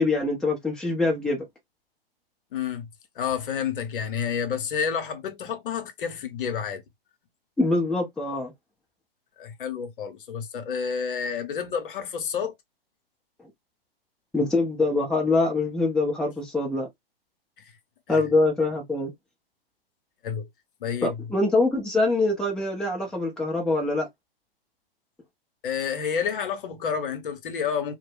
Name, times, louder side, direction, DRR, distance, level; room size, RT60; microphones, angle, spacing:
voice 1, 0.0-1.4 7.6-8.5 14.3-16.9 18.1-19.1 21.0-24.1, left 2 dB, ahead, 0.5 m, -24 dB
voice 2, 2.5-2.9 3.2-6.8 9.4-12.5 18.1-18.2 20.2-20.5 20.8-21.1 25.6-27.9, left 7 dB, 60° left, 0.7 m, -29 dB
2.1 x 2.0 x 3.2 m
figure-of-eight pair, 115°, 30 cm